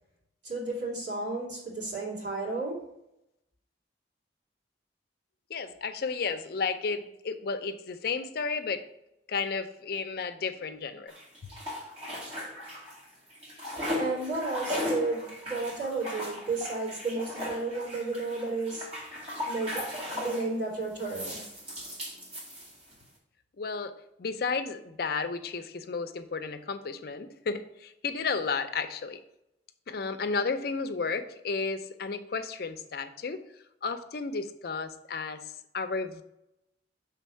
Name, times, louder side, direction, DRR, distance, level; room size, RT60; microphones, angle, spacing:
voice 1, 0.4-2.8 14.0-18.9 19.5-21.4, right 3 dB, 70° right, -5 dB, 2.8 m, -33 dB
voice 2, 5.5-8.9 9.3-11.1 23.6-23.9 24.2-29.2 29.9-33.4 33.8-36.2, left 4 dB, 55° left, 9 dB, 0.5 m, -33 dB
sound 1, 11.1-13.0 13.3-20.5 21.0-23.0, left 1 dB, 35° right, 2.2 m, -37 dB
6.1 x 3.9 x 5.5 m, 0.83 s
head